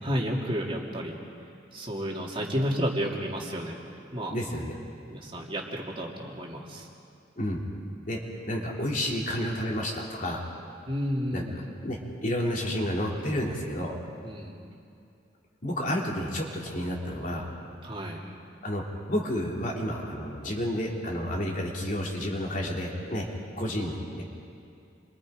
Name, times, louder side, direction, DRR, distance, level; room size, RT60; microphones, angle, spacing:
voice 1, 0.0-1.2 1.7-3.8 4.1-4.4 5.1-6.9 10.9-11.7 14.2-14.6 17.8-18.2, equal, 30° right, -2 dB, 2.6 m, -31 dB
voice 2, 4.3-4.7 7.4-7.6 8.1-8.2 8.5-10.5 11.3-11.4 11.8-13.9 15.6-17.5 18.6-23.3 23.6-24.2, equal, 45° left, -1 dB, 3.1 m, -30 dB
29.5 x 24.0 x 5.0 m, 2.5 s
head